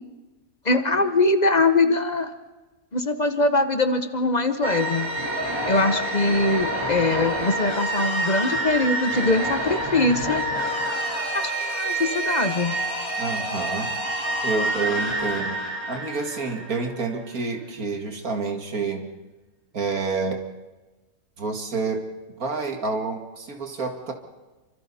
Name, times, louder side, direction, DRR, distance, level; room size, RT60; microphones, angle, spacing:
voice 1, 0.6-2.3 2.9-5.1 5.7-10.4 11.3-12.7, left 2 dB, 35° left, 8 dB, 1.0 m, -22 dB
sound 1, 4.6-17.1, right 1 dB, 20° right, 2.9 m, -27 dB
voice 2, 13.2-13.9 14.4-19.1 19.7-20.4 21.4-22.0 22.4-24.1, right 4 dB, 75° right, 3 dB, 2.6 m, -28 dB
28.0 x 25.0 x 4.2 m, 1.2 s
omnidirectional pair, 1.5 m